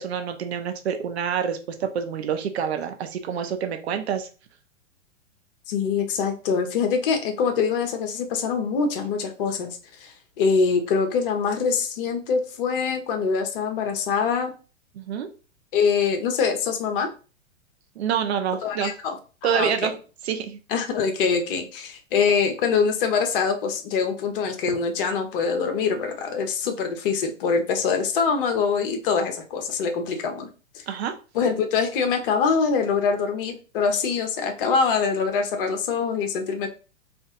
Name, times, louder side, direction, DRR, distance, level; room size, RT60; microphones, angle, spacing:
voice 1, 0.0-4.3 15.0-15.3 18.0-18.9 19.4-19.9 20.2-20.6 30.9-31.2, right 8 dB, 55° right, 6 dB, 0.7 m, -27 dB
voice 2, 5.7-14.5 15.7-17.1 18.6-19.2 19.4-19.9 20.7-30.5 31.3-36.7, left 5 dB, 45° left, 5 dB, 0.8 m, -24 dB
2.5 x 2.5 x 3.8 m, 0.35 s
figure-of-eight pair, 115°, 39 cm